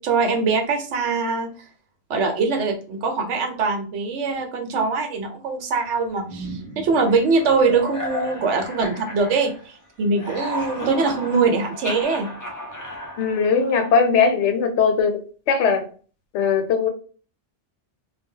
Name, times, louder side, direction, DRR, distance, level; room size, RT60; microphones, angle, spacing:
voice 1, 0.0-1.5 2.1-12.3, right 4 dB, 85° right, 1.0 m, -22 dB
sound 1, 6.3-9.8 10.0-14.1, left 1 dB, 30° left, 0.3 m, -34 dB
voice 2, 13.2-15.2 15.5-15.9 16.3-16.9, left 5 dB, 80° left, 0.9 m, -19 dB
2.2 x 2.1 x 3.5 m
omnidirectional pair, 1.2 m